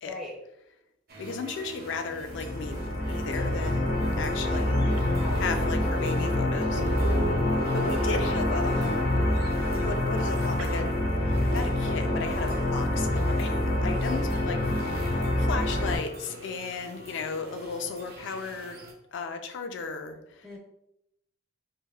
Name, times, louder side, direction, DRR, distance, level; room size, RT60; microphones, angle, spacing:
voice 1, 0.0-0.4 4.2-4.7 5.2-6.2 14.0-14.2 20.4-20.6, left 1 dB, ahead, -3 dB, 0.4 m, -42 dB
sound 1, 1.1-18.9, equal, 50° right, 0.6 m, -45 dB
voice 2, 1.2-4.8 5.4-7.1 7.7-9.1 9.8-11.0 11.5-18.8 19.1-20.5, left 4 dB, 65° left, 7 dB, 0.3 m, -35 dB
sound 2, 2.2-16.0, left 1 dB, 85° left, 0.9 m, -26 dB
sound 3, 4.8-8.9 10.6-11.7, right 4 dB, 85° right, 0.3 m, -40 dB
3.3 x 2.4 x 2.3 m, 0.83 s
head